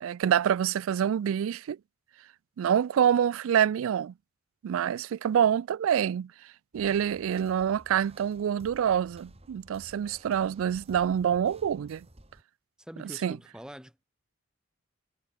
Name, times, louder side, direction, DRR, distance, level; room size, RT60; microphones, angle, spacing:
voice 1, 0.0-1.8 2.6-4.1 4.6-6.3 6.7-12.1 13.2-13.4, right 9 dB, 75° right, 0.3 m, -26 dB
sound 1, 6.7-12.4, right 1 dB, 30° right, 2.4 m, -53 dB
voice 2, 12.8-14.0, equal, 5° right, 1.3 m, -45 dB
head